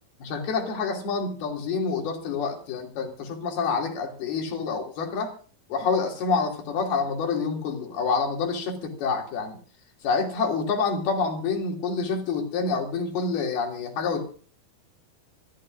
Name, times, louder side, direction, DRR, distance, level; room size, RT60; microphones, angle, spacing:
voice 1, 0.2-5.3 5.7-9.6 10.0-14.3, left 4 dB, 75° left, 1 dB, 4.6 m, -27 dB
27.0 x 14.0 x 2.5 m, 0.41 s
omnidirectional pair, 4.5 m